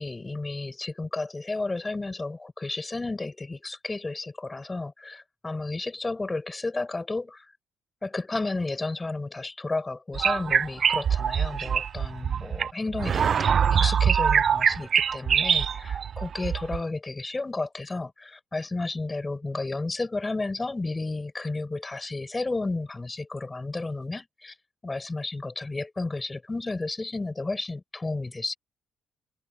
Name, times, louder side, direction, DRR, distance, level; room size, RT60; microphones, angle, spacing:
voice 1, 0.0-7.5 8.0-24.5 24.8-28.6, left 3 dB, 20° left, 7.6 m, -32 dB
sound 1, 10.1-16.8, right 7 dB, 55° right, 0.6 m, -24 dB
cardioid pair, 90°, 0 cm